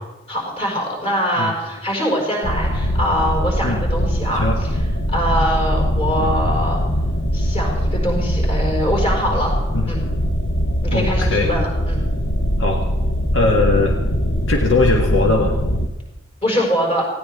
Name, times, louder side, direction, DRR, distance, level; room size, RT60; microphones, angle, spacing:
voice 1, 0.3-4.5 5.1-6.8 7.3-9.5 9.9-10.0 10.8-12.0 16.4-17.0, equal, 30° left, -3 dB, 5.5 m, -23 dB
sound 1, 2.4-15.9, equal, 55° left, 1.1 m, -21 dB
voice 2, 10.9-11.5 12.6-12.8 13.3-14.0 14.5-15.5, left 3 dB, 75° left, 1 dB, 1.6 m, -19 dB
19.5 x 16.5 x 3.6 m, 1.0 s
head